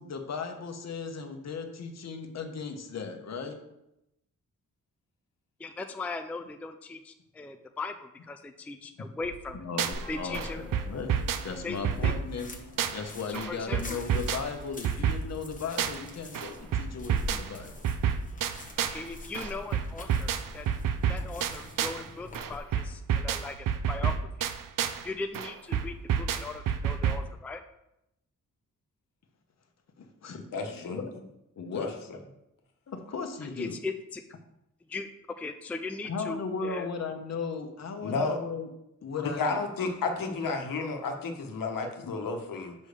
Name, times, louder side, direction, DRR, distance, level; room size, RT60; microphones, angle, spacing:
voice 1, 0.0-3.5 9.5-11.1 11.4-12.5 12.9-17.7 30.0-31.1 31.6-31.9 32.9-33.8 36.0-38.7 39.0-39.6 42.0-42.2, left 5 dB, 55° left, 5 dB, 1.0 m, -36 dB
voice 2, 5.6-9.6 10.1-10.6 11.6-11.8 12.0-12.1 13.3-14.0 18.8-20.7 21.1-24.5 25.0-27.6 33.4-34.2 34.9-35.1 35.4-36.9, left 3 dB, 5° left, 7 dB, 0.3 m, -39 dB
sound 1, 9.2-10.1 10.3-13.1 13.3-16.1 16.3-19.1 19.3-22.1 22.3-25.1 25.3-27.3, right 8 dB, 80° right, 0.6 m, -30 dB
sound 2, 9.9-22.6, left 2 dB, 25° left, 0.9 m, -45 dB
Wind instrument woodwind instrument, 10.0-12.8, left 1 dB, 45° right, 1.4 m, -50 dB
voice 3, 30.5-31.0 31.7-31.9 38.0-38.4 39.4-42.7, left 4 dB, 85° left, 4 dB, 1.2 m, -31 dB
5.4 x 5.2 x 6.6 m, 0.85 s
wide cardioid pair, 175°, 32 cm